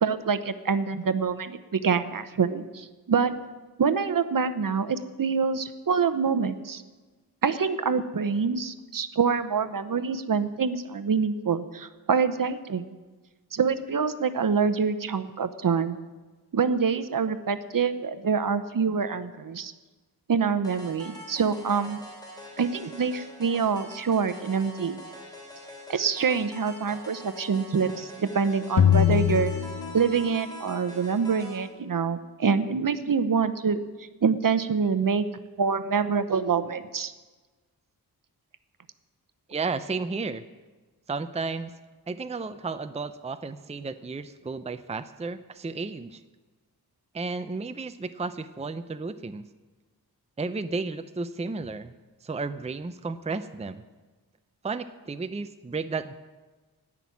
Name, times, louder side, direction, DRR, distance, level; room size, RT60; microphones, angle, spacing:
voice 1, 0.0-3.3 3.8-6.8 7.4-12.9 13.5-16.0 16.5-19.7 20.3-22.0 22.6-25.0 25.9-29.5 29.9-33.8 34.2-35.2 35.6-37.1, right 5 dB, 55° right, 12 dB, 0.9 m, -26 dB
sound 1, 20.6-31.7, equal, 10° left, 3.4 m, -44 dB
sound 2, 28.8-30.6, left 9 dB, 55° left, 0.7 m, -22 dB
voice 2, 39.5-40.4 41.1-41.7 42.1-46.2 47.1-49.5 50.4-51.9 52.2-53.8 54.6-56.1, right 4 dB, 15° right, 10 dB, 0.5 m, -33 dB
17.5 x 6.1 x 9.6 m, 1.3 s
wide cardioid pair, 95°, 39 cm